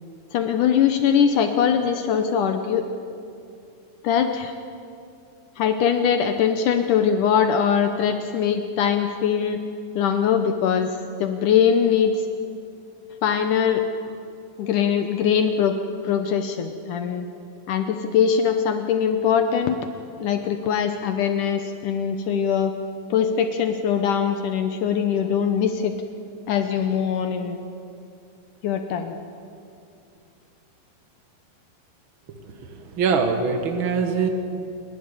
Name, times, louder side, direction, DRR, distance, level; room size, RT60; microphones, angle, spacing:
voice 1, 0.3-2.8 4.0-4.5 5.6-9.6 10.0-10.9 11.2-12.3 13.2-13.8 14.6-15.8 16.0-17.3 17.7-19.8 20.2-22.7 23.1-26.0 26.5-27.6 28.6-29.2, left 7 dB, 70° left, 7 dB, 2.0 m, -22 dB
voice 2, 32.4-34.3, right 5 dB, 65° right, 6 dB, 1.2 m, -24 dB
27.5 x 11.5 x 9.7 m, 2.5 s
omnidirectional pair, 4.4 m